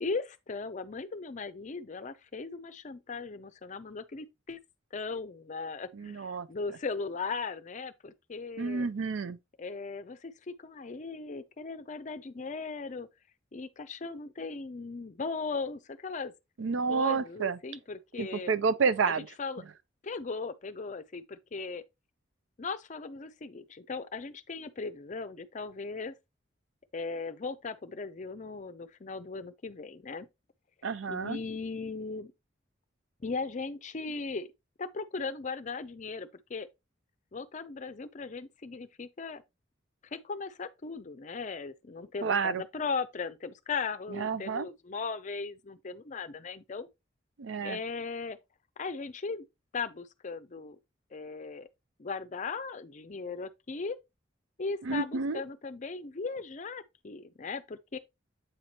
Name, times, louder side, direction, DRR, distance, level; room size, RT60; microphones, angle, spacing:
voice 1, 0.0-4.6 4.9-8.9 9.6-13.1 13.5-16.3 16.9-18.5 19.1-19.6 20.0-21.8 22.6-26.1 26.9-30.3 31.1-32.3 33.2-34.5 34.8-36.7 37.3-39.4 40.1-46.9 47.6-48.4 48.8-49.4 49.7-50.8 51.1-51.7 52.0-54.0 54.6-58.0, left 4 dB, 40° left, 0.5 m, -38 dB
voice 2, 6.0-6.5 8.6-9.4 16.6-17.6 18.2-19.3 30.8-31.4 42.2-42.6 44.1-44.7 47.4-47.8 54.9-55.4, right 5 dB, 80° right, 0.5 m, -30 dB
8.0 x 4.4 x 2.9 m
head